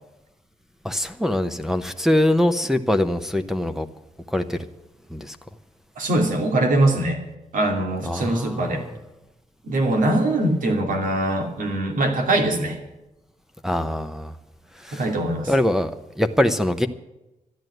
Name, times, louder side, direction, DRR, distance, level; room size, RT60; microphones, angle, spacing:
voice 1, 0.8-3.9 4.3-4.6 5.1-5.4 8.0-9.0 13.6-14.4 14.7-15.1 15.5-16.9, left 1 dB, 5° right, 5 dB, 0.8 m, -23 dB
voice 2, 6.0-7.2 7.5-8.9 9.7-12.8 14.9-15.5, right 1 dB, 80° right, 4 dB, 2.7 m, -22 dB
12.5 x 10.5 x 7.9 m, 0.95 s
wide cardioid pair, 145°, 14 cm